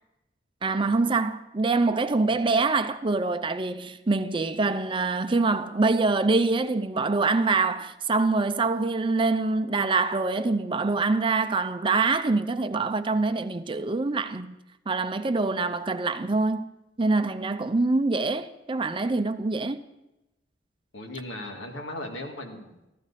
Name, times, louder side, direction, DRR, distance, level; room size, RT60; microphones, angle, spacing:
voice 1, 0.6-14.6 14.9-16.7 17.0-19.8, right 3 dB, 25° right, 0.5 m, -25 dB
voice 2, 20.9-22.9, left 1 dB, 85° left, 2.1 m, -37 dB
14.5 x 14.0 x 4.1 m
head